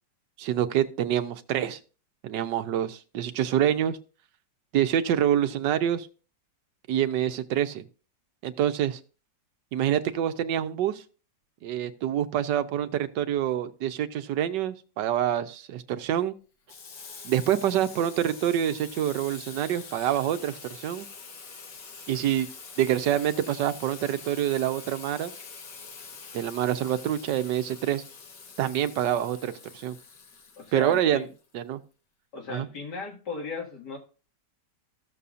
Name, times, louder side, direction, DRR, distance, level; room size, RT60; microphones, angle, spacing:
voice 1, 0.4-1.8 2.2-4.0 4.7-6.1 6.9-7.8 8.4-9.0 9.7-11.0 11.6-16.3 17.2-21.1 22.1-22.5 22.8-25.3 26.3-28.0 28.6-30.0 30.7-31.2 31.5-31.8 32.5-32.7, right 11 dB, 80° right, 10 dB, 1.3 m, -26 dB
Water tap faucet / Sink (filling or washing), 16.7-31.5, left 5 dB, 90° left, 1.8 m, -45 dB
voice 2, 30.6-31.3 32.3-34.0, left 3 dB, 70° left, 0 dB, 2.6 m, -36 dB
14.5 x 6.9 x 2.5 m, 0.36 s
omnidirectional pair, 1.9 m